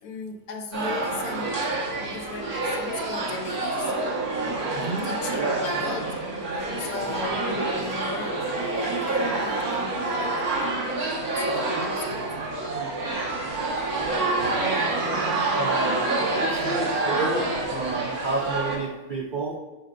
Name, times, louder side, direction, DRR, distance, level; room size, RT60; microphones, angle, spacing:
voice 1, 0.0-1.7 2.0-3.9 4.8-6.0 6.5-12.2, left 4 dB, 75° left, 6 dB, 1.2 m, -37 dB
sound 1, 0.7-18.8, right 2 dB, 90° right, 2.0 m, -27 dB
voice 2, 4.7-5.6 6.8-6.9 14.0-19.6, right 3 dB, 60° right, 0 dB, 0.5 m, -31 dB
9.8 x 6.5 x 2.5 m, 1.1 s
omnidirectional pair, 1.5 m